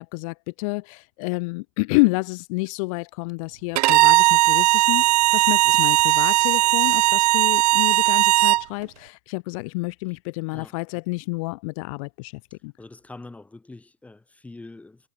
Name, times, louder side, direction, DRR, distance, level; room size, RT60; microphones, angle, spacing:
voice 1, 0.0-5.0 5.3-12.7, left 28 dB, 60° left, 0.9 m, -28 dB
Bowed string instrument, 3.8-8.6, right 19 dB, 85° right, 0.5 m, -18 dB
voice 2, 12.8-15.1, left 2 dB, 5° left, 5.7 m, -44 dB
supercardioid pair, 155°, 20 cm